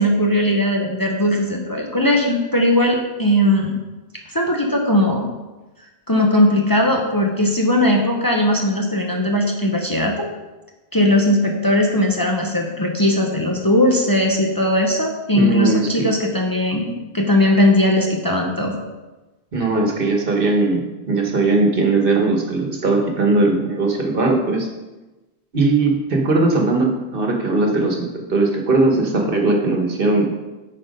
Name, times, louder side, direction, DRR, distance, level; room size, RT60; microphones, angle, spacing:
voice 1, 0.0-3.8 4.3-5.3 6.1-10.3 10.9-18.7, left 1 dB, 25° left, 0 dB, 0.7 m, -18 dB
voice 2, 15.3-16.1 19.5-24.7 25.5-30.3, right 3 dB, 60° right, 1 dB, 1.4 m, -19 dB
9.2 x 4.3 x 5.2 m, 1.1 s
omnidirectional pair, 1.0 m